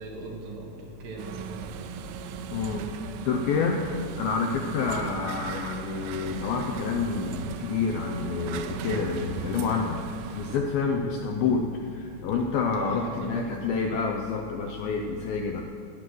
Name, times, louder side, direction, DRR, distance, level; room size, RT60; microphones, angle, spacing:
voice 1, 0.0-1.7 4.4-4.7 10.8-11.1 12.7-13.4, right 3 dB, 75° right, 0 dB, 3.8 m, -39 dB
sound 1, 1.2-10.6, right 7 dB, 90° right, 3.0 m, -37 dB
voice 2, 2.5-2.9 3.3-3.9 4.2-10.0 10.3-15.6, left 5 dB, 80° left, 3 dB, 2.2 m, -28 dB
16.5 x 9.1 x 6.2 m, 2.5 s
omnidirectional pair, 5.1 m